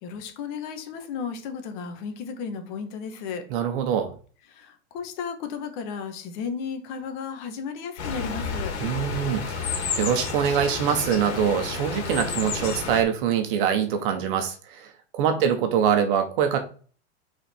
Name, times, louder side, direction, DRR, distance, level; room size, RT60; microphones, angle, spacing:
voice 1, 0.0-3.4 4.5-8.8 15.2-15.6, left 6 dB, 45° left, 1.5 m, -34 dB
voice 2, 3.5-4.1 8.8-16.6, right 8 dB, 50° right, 1.4 m, -24 dB
sound 1, 8.0-13.0, left 5 dB, 70° left, 2.3 m, -31 dB
5.5 x 4.4 x 4.4 m
supercardioid pair, 150°, 34 cm